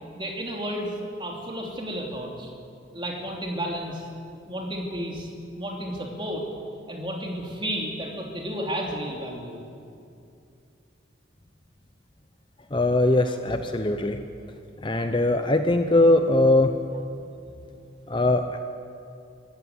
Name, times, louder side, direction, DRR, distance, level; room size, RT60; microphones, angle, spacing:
voice 1, 0.2-0.9 1.2-2.5 2.9-4.1 4.3-5.3 5.6-6.5 6.9-9.6, equal, 25° right, 0 dB, 3.0 m, -32 dB
voice 2, 12.7-14.2 14.8-16.7 18.1-18.6, left 2 dB, 25° left, 7 dB, 0.7 m, -21 dB
25.0 x 14.0 x 9.5 m, 2.5 s
head